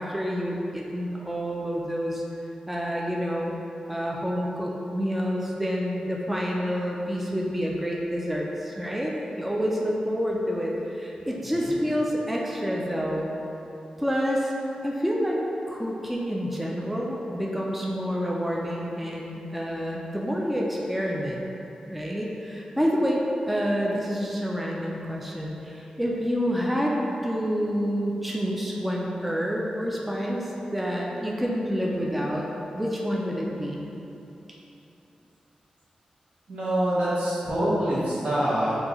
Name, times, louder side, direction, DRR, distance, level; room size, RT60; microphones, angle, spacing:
voice 1, 0.0-2.2 2.7-3.5 3.9-13.3 14.0-14.5 14.8-15.4 15.7-21.4 21.9-26.9 27.2-32.5 32.7-33.9, equal, 5° right, -3 dB, 0.4 m, -28 dB
voice 2, 11.4-11.7 36.5-38.8, right 1 dB, 70° right, -9 dB, 1.1 m, -25 dB
3.8 x 2.6 x 2.9 m, 3.0 s
cardioid pair, 75°, 2 cm